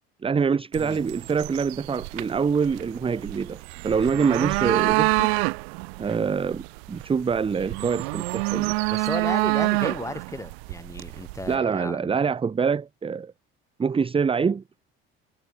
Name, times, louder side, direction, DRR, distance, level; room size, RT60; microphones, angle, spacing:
voice 1, 0.2-5.3 6.0-8.8 11.5-13.3 13.8-14.6, right 6 dB, 20° right, 0.6 m, -25 dB
sound 1, 0.7-11.6, right 31 dB, 75° right, 1.1 m, -27 dB
voice 2, 8.9-12.2, left 2 dB, 10° left, 6.0 m, -34 dB
hypercardioid pair, 75°, 31 cm